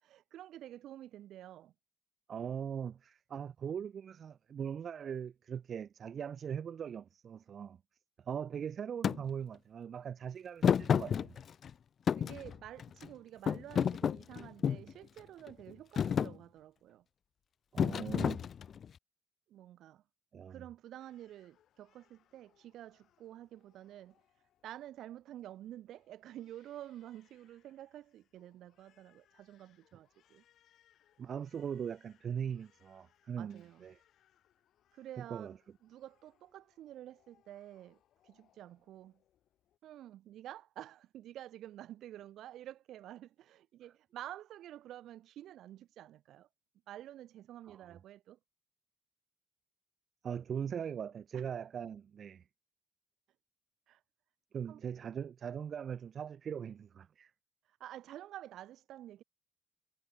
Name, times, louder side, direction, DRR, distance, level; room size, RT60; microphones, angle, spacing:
voice 1, 0.0-1.7 12.1-17.0 19.5-20.0 20.5-24.2 24.6-30.4 33.4-33.8 34.9-35.6 35.8-38.0 38.2-39.2 39.8-46.5 46.9-48.4 51.3-51.4 53.9-54.0 54.7-54.8 57.8-59.2, right 12 dB, 80° right, 3.3 m, -50 dB
voice 2, 2.3-7.8 8.2-11.3 14.7-14.9 17.7-18.4 20.3-20.6 31.2-34.0 35.2-35.6 47.6-48.0 50.2-52.4 54.5-57.3, right 8 dB, 55° right, 2.0 m, -40 dB
Thump thud, 9.0-9.2 10.6-11.7 12.1-13.1 13.5-14.9 15.5-15.7 16.0-16.3 17.8-18.9, left 8 dB, 55° left, 0.4 m, -30 dB
Crying sobbing, 21.0-39.8, left 11 dB, 75° left, 7.4 m, -73 dB
cardioid pair, 90°, 0 cm